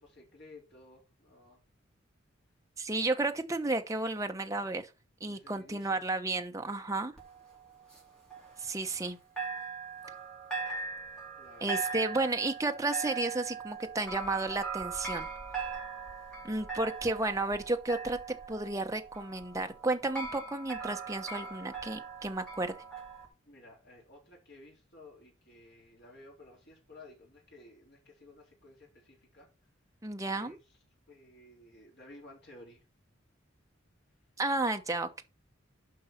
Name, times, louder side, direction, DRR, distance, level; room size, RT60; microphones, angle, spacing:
voice 1, 0.0-1.6 5.2-6.1 11.4-11.8 23.4-29.5 30.3-32.8, left 2 dB, 55° left, 4.1 m, -55 dB
voice 2, 2.8-4.9 5.2-7.1 8.6-9.2 11.6-15.3 16.4-22.7 30.0-30.6 34.4-35.2, right 2 dB, 15° right, 0.9 m, -32 dB
sound 1, 7.2-9.1 9.4-23.3, right 4 dB, 5° left, 3.7 m, -40 dB
9.4 x 5.5 x 5.8 m
head